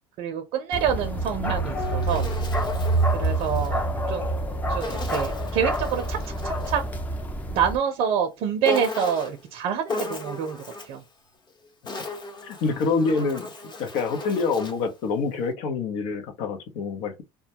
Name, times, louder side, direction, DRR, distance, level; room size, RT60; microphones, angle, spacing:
voice 1, 0.2-2.3 3.1-3.8 4.1-4.3 4.7-6.2 6.4-6.8 7.5-10.6 10.9-11.0, right 8 dB, 55° right, 0.5 m, -26 dB
Bark, 0.7-7.8, right 2 dB, 15° left, 0.4 m, -27 dB
Insect, 1.6-3.7 4.8-6.9 8.6-9.4 9.9-11.0 11.6-14.9, left 3 dB, 40° left, 0.9 m, -36 dB
Piano, 1.7-6.6 8.2-9.0, left 4 dB, 85° left, 1.5 m, -44 dB
voice 2, 12.4-13.5 13.8-17.2, left 4 dB, 70° left, 0.7 m, -26 dB
2.2 x 2.2 x 2.8 m
supercardioid pair, 105°, 12 cm